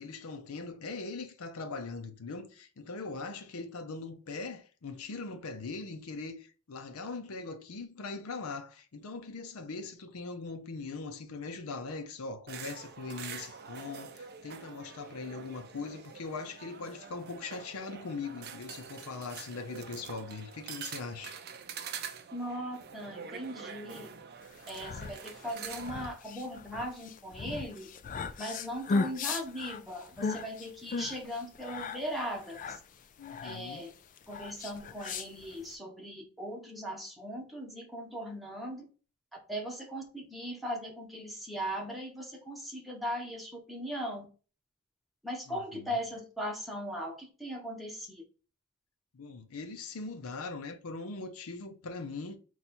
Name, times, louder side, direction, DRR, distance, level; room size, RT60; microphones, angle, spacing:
voice 1, 0.0-21.4 33.2-33.9 45.5-46.0 49.1-52.4, left 3 dB, 90° left, 0.6 m, -41 dB
sound 1, 12.5-26.1, right 7 dB, 50° right, 0.5 m, -45 dB
voice 2, 22.3-24.1 24.7-27.9 28.4-32.8 33.4-33.9 34.3-38.8 39.3-44.3 45.2-48.2, equal, ahead, 0.9 m, -39 dB
sound 2, 24.5-35.7, left 4 dB, 40° left, 0.3 m, -37 dB
4.1 x 2.4 x 4.2 m
head